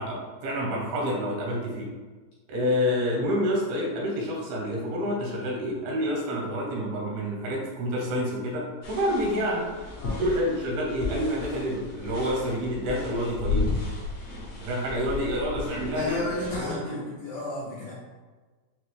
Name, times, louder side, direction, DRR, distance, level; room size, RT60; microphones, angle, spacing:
voice 1, 0.0-1.9 2.5-9.7 10.2-13.7 14.6-17.0, equal, 90° right, -3 dB, 2.9 m, -28 dB
sound 1, 8.8-16.6, left 3 dB, 70° left, 1.5 m, -34 dB
voice 2, 15.9-17.9, left 2 dB, 85° left, -6 dB, 1.8 m, -33 dB
6.0 x 2.1 x 3.1 m, 1.3 s
omnidirectional pair, 4.4 m